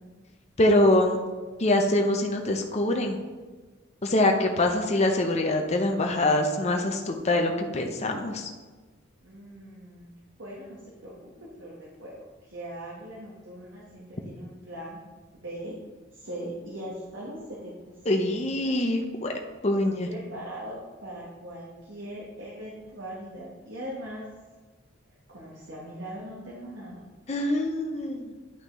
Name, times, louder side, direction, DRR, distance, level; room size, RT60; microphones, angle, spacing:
voice 1, 0.6-1.2 1.6-3.2 4.0-8.5 18.1-19.3 19.6-20.1 27.3-28.3, left 1 dB, 35° left, 3 dB, 0.6 m, -24 dB
voice 2, 9.2-10.1 10.4-12.1 12.5-15.0 15.3-15.7 16.1-18.4 18.6-18.8 19.7-24.3 25.3-27.1, right 1 dB, 65° right, -5 dB, 1.4 m, -40 dB
9.9 x 5.6 x 3.1 m, 1.4 s
head